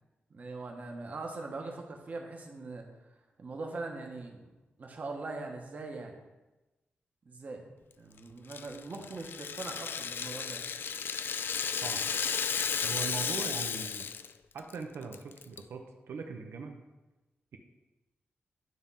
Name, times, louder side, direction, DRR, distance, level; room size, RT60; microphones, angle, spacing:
voice 1, 0.3-2.8 3.4-4.5 4.8-6.2 7.3-10.6, right 3 dB, 40° right, 2 dB, 1.0 m, -41 dB
Rattle (instrument), 8.5-14.3 14.6-14.7 15.1-15.6, left 7 dB, 60° left, 0.3 m, -34 dB
voice 2, 12.8-14.1 14.5-16.8, right 5 dB, 90° right, 4 dB, 0.7 m, -40 dB
9.4 x 3.6 x 5.5 m, 1.1 s
wide cardioid pair, 180°, 4 cm